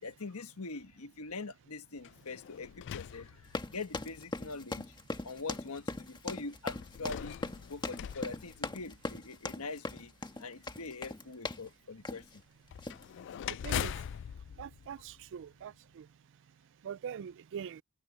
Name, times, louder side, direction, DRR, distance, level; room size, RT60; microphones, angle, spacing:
voice 1, 0.0-4.9 5.2-7.4 7.7-10.1 10.4-12.2, left 3 dB, 80° left, 1.3 m, -43 dB
sound 1, 2.0-4.0 4.8-4.9 6.7-9.3 12.7-15.7, left 9 dB, 55° left, 0.3 m, -42 dB
sound 2, 3.4-11.7 12.0-12.4 12.8-13.0, left 2 dB, 20° left, 1.5 m, -40 dB
voice 2, 13.6-13.9 14.6-16.0 16.8-17.8, right 8 dB, 60° right, 0.3 m, -42 dB
head